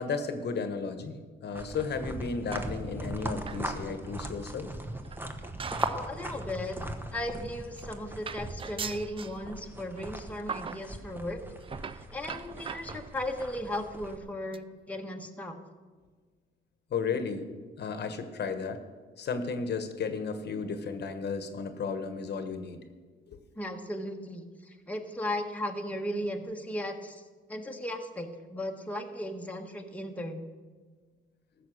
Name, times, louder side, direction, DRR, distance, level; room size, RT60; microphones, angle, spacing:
voice 1, 0.0-4.7 16.9-17.5 17.8-18.8 19.2-22.8 23.3-23.4, left 5 dB, 55° left, 8 dB, 1.2 m, -34 dB
sound 1, 1.5-14.2, right 1 dB, 10° right, 1.2 m, -39 dB
sound 2, 2.5-3.1 3.4-3.7 4.1-4.2 5.0-6.1 6.4-6.6 7.4-7.5 7.8-8.0 8.3-9.4 10.0-10.1 10.5-10.9 11.6-13.4 14.1-14.2 14.5-14.6 15.0-15.1 15.2-15.3, right 6 dB, 25° right, 0.4 m, -41 dB
voice 2, 5.8-11.4 11.9-15.5 23.6-27.2 27.5-30.5, left 1 dB, 5° left, 2 dB, 1.3 m, -36 dB
14.5 x 6.8 x 6.4 m, 1.5 s
cardioid pair, 90°, 20 cm